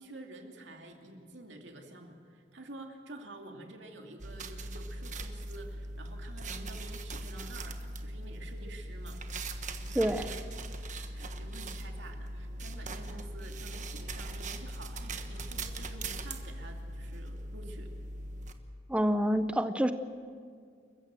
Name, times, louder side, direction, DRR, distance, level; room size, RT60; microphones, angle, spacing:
voice 1, 0.0-9.2 10.2-10.4 10.9-17.9, right 2 dB, 80° right, 2 dB, 2.7 m, -49 dB
sound 1, 4.2-18.5, right 2 dB, 45° right, 1.3 m, -40 dB
voice 2, 9.9-10.3 18.9-19.9, equal, 5° right, 10 dB, 0.6 m, -27 dB
28.5 x 15.0 x 7.6 m, 2.1 s
head